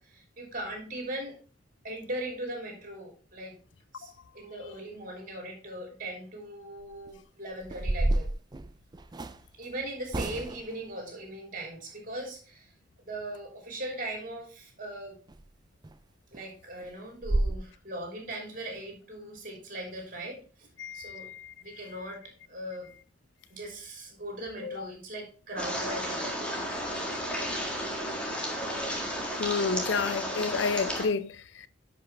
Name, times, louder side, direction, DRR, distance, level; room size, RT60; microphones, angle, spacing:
voice 1, 0.0-1.3 1.8-3.6 3.9-8.3 9.6-12.7 13.0-15.1 16.3-20.7 20.9-21.3 21.6-22.9 23.5-26.4 27.0-27.1, right 1 dB, 50° right, 3.2 m, -39 dB
sound 1, 6.8-7.1 7.6-9.4 10.1-10.8 15.3-15.4 15.8-16.0 16.3-16.4 16.8-16.9 17.2-17.6, right 1 dB, 25° right, 0.4 m, -30 dB
voice 2, 20.8-21.8 24.6-24.9 29.4-31.7, left 5 dB, 80° left, 0.5 m, -31 dB
sound 2, 25.6-31.0, equal, 5° left, 1.8 m, -33 dB
10.5 x 5.3 x 3.4 m
head